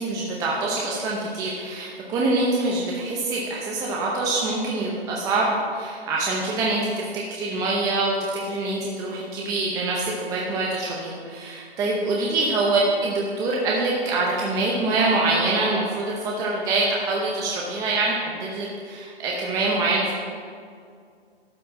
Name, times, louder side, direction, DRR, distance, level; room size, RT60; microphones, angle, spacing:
voice 1, 0.0-20.1, right 2 dB, 10° right, -3 dB, 0.7 m, -25 dB
12.0 x 4.6 x 7.5 m, 2.2 s
hypercardioid pair, 145°, 31 cm